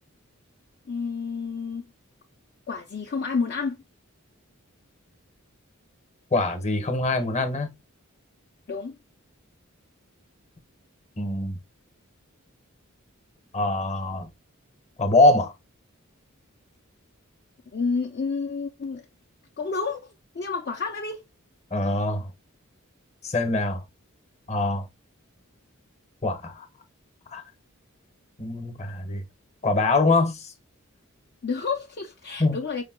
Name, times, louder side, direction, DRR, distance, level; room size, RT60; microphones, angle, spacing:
voice 1, 0.9-1.9 2.7-3.8 8.7-9.0 17.7-19.1 19.6-21.2 31.4-32.8, left 4 dB, 50° left, 0.5 m, -30 dB
voice 2, 6.3-7.7 11.2-11.6 13.5-14.3 15.0-15.5 21.7-22.3 23.2-23.8 24.5-24.9 26.2-26.7 27.3-27.4 28.4-29.2 29.6-30.5 32.4-32.6, left 2 dB, 30° left, 0.9 m, -23 dB
5.0 x 2.2 x 3.5 m
head